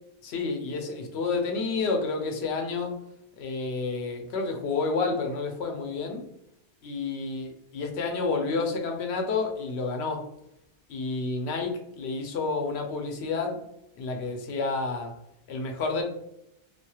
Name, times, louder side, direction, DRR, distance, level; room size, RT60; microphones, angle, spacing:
voice 1, 0.2-3.0 3.4-6.3 6.8-10.2 10.9-13.6 14.0-15.1 15.5-16.0, left 4 dB, 80° left, 2 dB, 0.9 m, -30 dB
2.4 x 2.3 x 2.8 m, 0.80 s
omnidirectional pair, 1.1 m